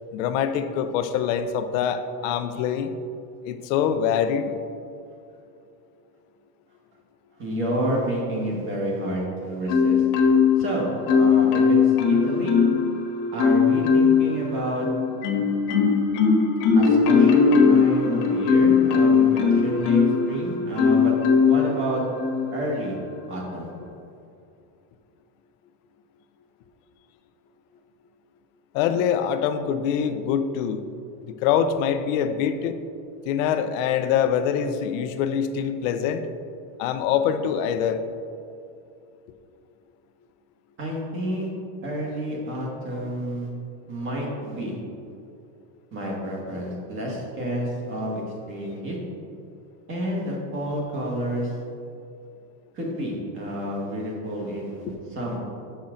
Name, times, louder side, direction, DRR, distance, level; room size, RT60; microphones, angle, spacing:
voice 1, 0.1-2.9 3.4-4.5 28.7-30.8 31.3-32.7 33.2-36.2 36.8-38.0, left 8 dB, 55° left, 9 dB, 0.5 m, -24 dB
voice 2, 7.4-10.0 10.6-12.5 13.3-14.9 16.7-20.0 20.3-21.2 21.4-22.0 22.5-22.9 23.3-23.7 40.8-41.5 41.8-43.5 43.9-44.7 45.9-48.2 48.5-49.0 49.9-51.5 52.7-55.4, equal, 25° right, -3 dB, 1.4 m, -29 dB
Marimba xylophone, 9.7-10.7 11.1-12.9 13.4-14.3 14.8-20.3 20.8-21.6 22.2-22.4, left 5 dB, 70° left, 1.3 m, -18 dB
7.2 x 5.7 x 3.8 m, 2.5 s
cardioid pair, 165°, 49 cm